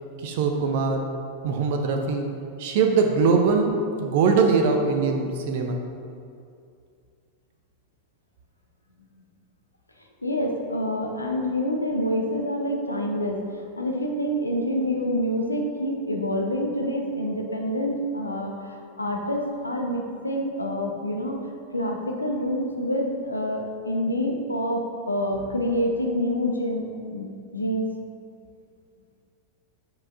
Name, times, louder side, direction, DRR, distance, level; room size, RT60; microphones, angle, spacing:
voice 1, 0.2-1.1 1.4-2.3 2.6-5.8, right 4 dB, 50° right, 4 dB, 0.6 m, -22 dB
voice 2, 10.2-27.9, equal, 85° left, 1 dB, 0.7 m, -27 dB
8.5 x 4.8 x 2.5 m, 2.4 s
figure-of-eight pair, 90°, 0 cm